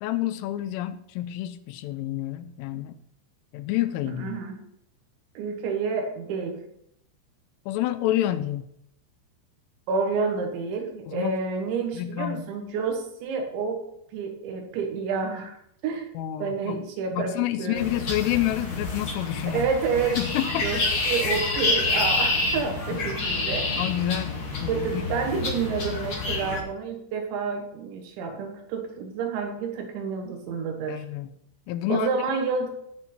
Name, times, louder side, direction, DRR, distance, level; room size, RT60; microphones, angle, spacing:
voice 1, 0.0-2.9 3.5-4.3 7.7-8.6 11.1-11.4 11.9-12.4 16.2-16.8 17.1-19.6 20.2-20.7 22.9-23.0 23.8-25.0 30.9-31.3 31.7-32.1, left 13 dB, 85° left, 11 dB, 3.2 m, -28 dB
voice 2, 4.2-4.6 5.4-6.6 9.9-13.8 14.1-15.6 15.8-16.1 16.4-17.8 19.5-23.8 24.7-31.0 31.9-32.7, right 5 dB, 70° right, 3 dB, 3.5 m, -29 dB
sound 1, 17.7-26.6, left 3 dB, 40° left, 1.9 m, -28 dB
17.5 x 6.1 x 4.3 m, 0.74 s
omnidirectional pair, 5.8 m